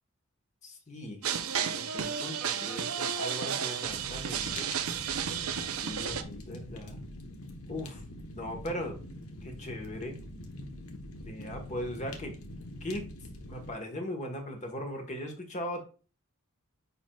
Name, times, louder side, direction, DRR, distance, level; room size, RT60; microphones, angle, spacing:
voice 1, 0.6-1.2 1.6-4.7 5.8-7.0 7.7-8.0 8.3-9.0 9.4-10.2 11.2-12.4 12.8-13.0 13.5-15.8, left 1 dB, 35° left, 3 dB, 1.4 m, -39 dB
sound 1, 1.2-6.2, right 7 dB, 85° right, 0.7 m, -32 dB
Fire, 3.8-13.7, left 1 dB, 90° left, 1.2 m, -44 dB
9.7 x 4.5 x 2.4 m, 0.36 s
head